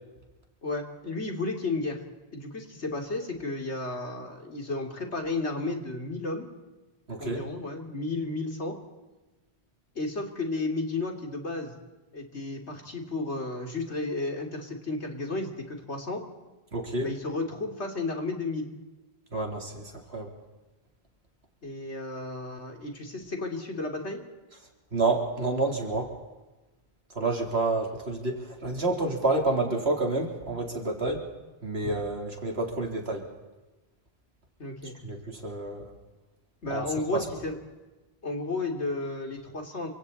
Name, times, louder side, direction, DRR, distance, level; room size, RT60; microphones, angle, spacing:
voice 1, 0.6-2.0 2.3-6.5 7.2-8.7 9.9-11.7 12.1-16.2 17.0-18.8 21.6-24.2 34.6-35.0 36.6-37.6 38.2-39.9, left 2 dB, 80° left, 3 dB, 3.4 m, -33 dB
voice 2, 7.1-7.4 16.7-17.1 19.3-20.3 24.9-26.1 27.1-31.2 31.6-33.3 35.0-35.9 36.7-36.8 37.1-37.3, right 2 dB, 70° right, 1 dB, 4.0 m, -29 dB
29.0 x 26.0 x 4.3 m, 1.1 s
omnidirectional pair, 1.1 m